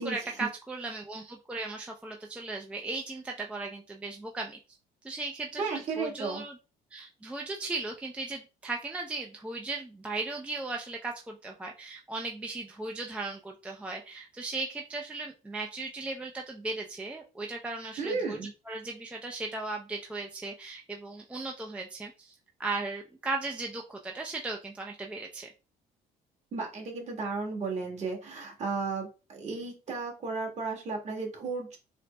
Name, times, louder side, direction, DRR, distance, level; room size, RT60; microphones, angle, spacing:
voice 1, 0.0-4.6 5.0-6.6 6.9-18.4 18.7-22.3 22.6-25.5, right 3 dB, 5° right, 1 dB, 0.4 m, -37 dB
voice 2, 5.6-6.4 18.0-18.5 26.5-31.8, right 4 dB, 40° right, 0 dB, 1.5 m, -34 dB
4.1 x 2.0 x 3.2 m, 0.31 s
cardioid pair, 110°, 17 cm